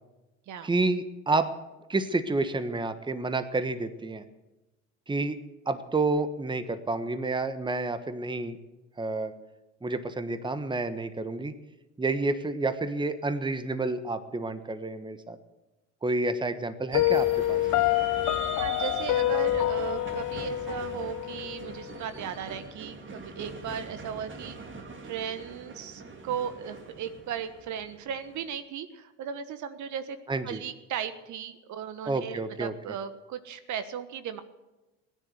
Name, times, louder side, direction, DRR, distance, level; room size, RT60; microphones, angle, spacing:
voice 1, 0.6-1.5 1.9-4.2 5.1-5.4 5.7-8.6 9.0-9.3 9.8-11.5 12.0-15.4 16.0-17.6 30.3-30.6 32.0-32.7, right 3 dB, 15° right, 11 dB, 1.3 m, -29 dB
Piano, 16.9-21.9, left 15 dB, 55° left, 0.8 m, -27 dB
sound 1, 16.9-28.5, right 4 dB, 35° right, 2.9 m, -42 dB
voice 2, 18.6-24.6 25.0-30.2 30.4-34.4, right 8 dB, 55° right, 11 dB, 1.4 m, -36 dB
17.0 x 10.5 x 8.1 m, 1.1 s
hypercardioid pair, 70°, 36 cm